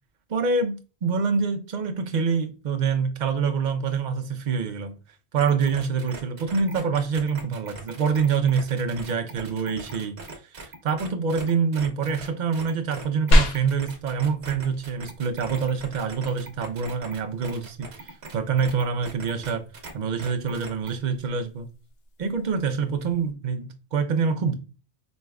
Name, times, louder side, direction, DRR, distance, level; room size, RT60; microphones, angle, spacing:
voice 1, 0.3-4.9 5.3-10.2 10.5-19.6 19.9-21.7 22.2-24.5, right 5 dB, 50° right, 0.7 m, -26 dB
sound 1, 5.4-19.9 20.2-20.9, right 3 dB, 70° right, 1.2 m, -41 dB
sound 2, 13.3-23.3, equal, 70° left, 1.0 m, -30 dB
5.2 x 3.2 x 2.3 m
omnidirectional pair, 1.1 m